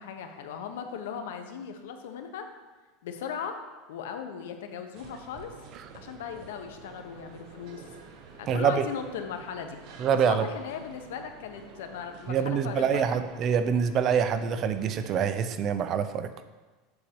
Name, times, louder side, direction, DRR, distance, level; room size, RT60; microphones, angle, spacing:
voice 1, 0.0-2.4 3.0-3.6 3.9-5.5 5.9-7.8 8.4-9.8 10.1-13.2, left 7 dB, 90° left, 6 dB, 0.9 m, -37 dB
sound 1, 4.9-15.2, right 5 dB, 55° right, 1.1 m, -49 dB
voice 2, 8.5-8.8 10.0-10.5 12.3-16.3, right 7 dB, 40° right, 10 dB, 0.5 m, -25 dB
8.0 x 4.2 x 6.9 m, 1.3 s
supercardioid pair, 145°, 0 cm